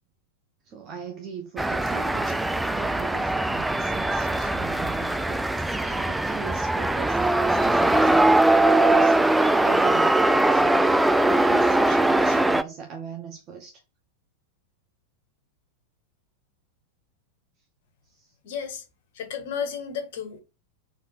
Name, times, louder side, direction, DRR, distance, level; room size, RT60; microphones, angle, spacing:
voice 1, 0.6-13.8 18.1-18.3, right 7 dB, 35° right, 1.2 m, -39 dB
sound 1, 1.6-12.6, right 2 dB, 5° right, 0.4 m, -21 dB
voice 2, 18.4-18.8 19.2-20.4, left 7 dB, 55° left, 1.7 m, -32 dB
4.9 x 4.5 x 4.4 m
figure-of-eight pair, 90°, 0 cm